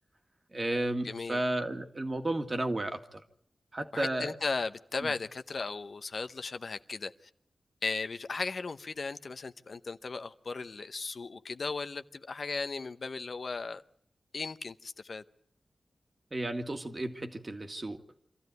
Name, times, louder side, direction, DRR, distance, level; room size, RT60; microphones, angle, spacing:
voice 1, 0.5-3.2 3.7-4.4 5.0-5.1 16.3-18.0, right 1 dB, 35° right, 2.0 m, -33 dB
voice 2, 1.0-1.4 3.9-7.1 7.8-13.8 14.3-15.2, left 4 dB, 60° left, 0.9 m, -36 dB
25.5 x 14.5 x 9.5 m
wide cardioid pair, 105°, 0 cm